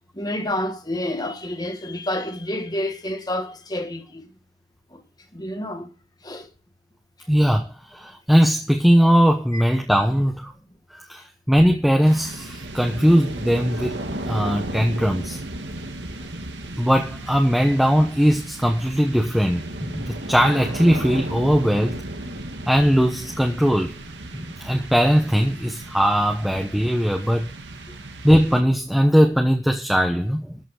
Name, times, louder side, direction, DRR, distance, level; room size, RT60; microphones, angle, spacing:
voice 1, 0.1-4.2 4.9-5.0 5.3-5.9 6.2-6.5 9.5-9.6, left 1 dB, 20° left, 1.5 m, -29 dB
voice 2, 7.3-10.5 10.9-14.0 14.3-15.4 16.8-22.0 22.7-23.9 24.3-27.5 28.2-30.6, equal, ahead, 1.0 m, -19 dB
sound 1, 12.0-29.0, right 1 dB, 80° right, 1.9 m, -35 dB
13.5 x 5.9 x 6.4 m
head